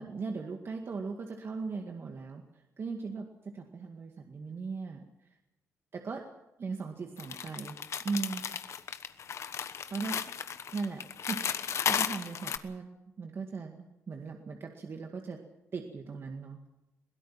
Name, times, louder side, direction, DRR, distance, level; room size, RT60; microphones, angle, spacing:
voice 1, 0.0-2.4 2.8-5.3 5.9-6.2 6.6-8.5 9.9-10.2 10.7-12.9 13.2-15.4 15.7-16.6, right 4 dB, 50° right, 3 dB, 2.0 m, -38 dB
sound 1, 7.2-12.6, left 7 dB, 65° left, 1.1 m, -34 dB
22.0 x 16.5 x 7.5 m, 0.95 s
cardioid pair, 85°, 5 cm